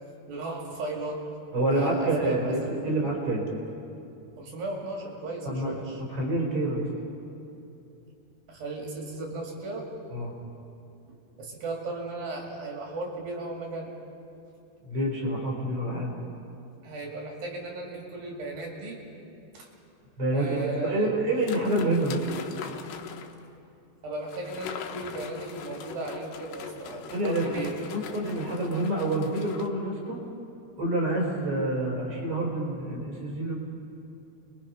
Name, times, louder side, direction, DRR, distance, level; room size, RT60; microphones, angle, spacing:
voice 1, 0.3-1.2 1.7-2.8 4.4-6.0 8.5-9.9 11.4-13.9 16.8-19.0 19.5-19.7 20.3-21.1 24.0-27.8, right 2 dB, 60° right, -1 dB, 4.1 m, -36 dB
voice 2, 1.5-3.5 5.4-5.7 6.0-6.9 10.1-10.3 14.8-16.1 20.2-22.2 27.1-27.6 27.9-30.2 30.8-33.6, right 1 dB, 35° right, -2 dB, 5.1 m, -27 dB
sound 1, 21.4-23.4 24.3-29.7, left 7 dB, 80° left, 3.2 m, -41 dB
30.0 x 22.5 x 5.6 m, 2.8 s
omnidirectional pair, 4.8 m